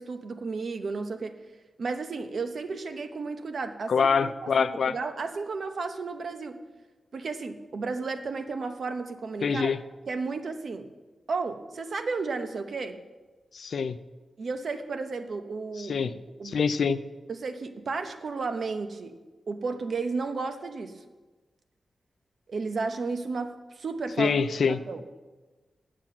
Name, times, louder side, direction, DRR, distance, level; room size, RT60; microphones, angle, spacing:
voice 1, 0.0-1.4 1.8-6.6 7.1-9.7 10.1-10.9 11.3-13.0 14.4-16.1 16.4-16.6 17.3-19.1 19.5-21.0 22.5-25.0, right 4 dB, 65° right, 7 dB, 0.8 m, -33 dB
voice 2, 3.9-5.0 9.4-9.8 13.5-14.0 15.9-16.1 16.4-17.0 24.2-24.8, left 6 dB, 75° left, 13 dB, 0.4 m, -25 dB
7.4 x 7.3 x 7.6 m, 1.2 s
wide cardioid pair, 120°, 0 cm